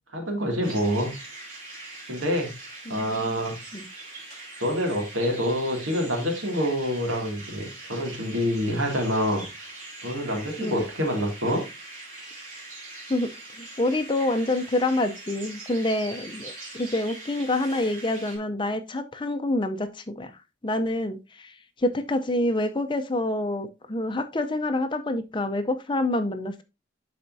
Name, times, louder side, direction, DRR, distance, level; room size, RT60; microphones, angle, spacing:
voice 1, 0.1-1.2 2.1-2.5 2.9-3.6 4.6-9.4 10.0-11.6, equal, 85° right, 2 dB, 2.4 m, -26 dB
sound 1, 0.6-18.4, right 2 dB, 40° right, 2.9 m, -42 dB
voice 2, 2.9-3.4 3.7-3.9 10.6-10.8 13.1-20.3 20.6-26.6, left 1 dB, 25° left, 9 dB, 0.6 m, -27 dB
11.5 x 4.3 x 2.6 m, 0.25 s
head